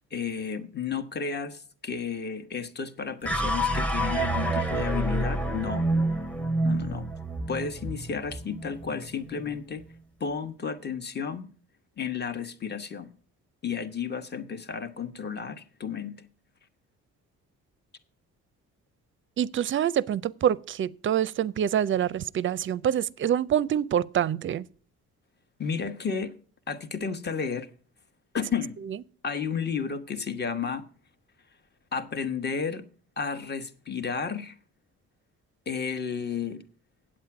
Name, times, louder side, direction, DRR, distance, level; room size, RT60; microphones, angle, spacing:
voice 1, 0.1-5.9 6.6-7.1 7.5-9.8 10.2-11.5 12.0-13.1 13.6-16.2 25.6-26.3 26.7-27.7 28.3-28.7 29.2-30.8 31.9-32.9 33.2-34.5 35.7-36.6, left 6 dB, 35° left, 1.1 m, -32 dB
sound 1, 3.2-9.6, right 1 dB, 5° left, 0.8 m, -28 dB
voice 2, 19.4-24.7, right 10 dB, 40° right, 0.4 m, -26 dB
8.7 x 8.0 x 5.8 m
cardioid pair, 90°, 30 cm